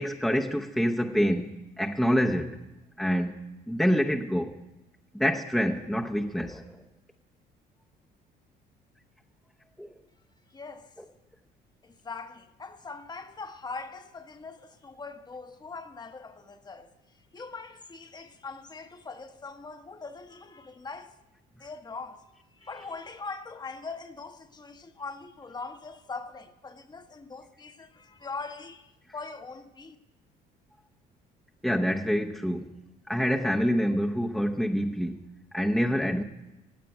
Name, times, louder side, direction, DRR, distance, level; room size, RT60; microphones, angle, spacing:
voice 1, 0.0-1.5 1.8-2.6 3.0-3.3 3.7-4.6 5.1-6.8 9.8-9.9 31.6-32.7 33.1-35.2 35.5-36.2, equal, ahead, 0.8 m, -26 dB
voice 2, 10.5-10.9 11.8-16.9 17.3-21.2 21.6-22.2 22.6-30.0, left 4 dB, 25° left, 1.0 m, -41 dB
16.5 x 7.5 x 9.0 m
cardioid pair, 110°, 17 cm